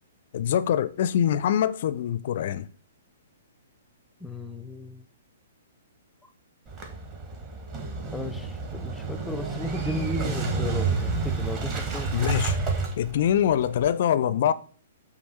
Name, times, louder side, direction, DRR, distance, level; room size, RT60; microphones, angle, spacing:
voice 1, 0.3-2.7 12.1-12.6 13.0-14.5, left 10 dB, 45° left, 0.4 m, -24 dB
voice 2, 4.2-5.1 8.1-12.1, left 2 dB, 5° left, 0.6 m, -36 dB
Motorcycle / Engine starting, 6.7-13.9, right 4 dB, 25° right, 1.4 m, -30 dB
7.9 x 2.8 x 5.5 m
figure-of-eight pair, 115°, 0 cm